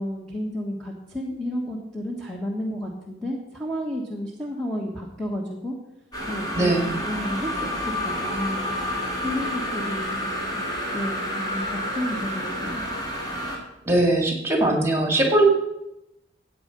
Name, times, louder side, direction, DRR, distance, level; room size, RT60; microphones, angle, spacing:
voice 1, 0.0-5.7 6.3-8.6 9.2-10.7 10.9-12.8, equal, ahead, -3 dB, 1.3 m, -31 dB
sound 1, 6.1-13.6, equal, 20° left, 2.7 m, -29 dB
voice 2, 6.6-6.9 13.9-15.4, right 1 dB, 15° right, 3 dB, 2.1 m, -20 dB
14.0 x 8.6 x 5.3 m, 0.88 s
head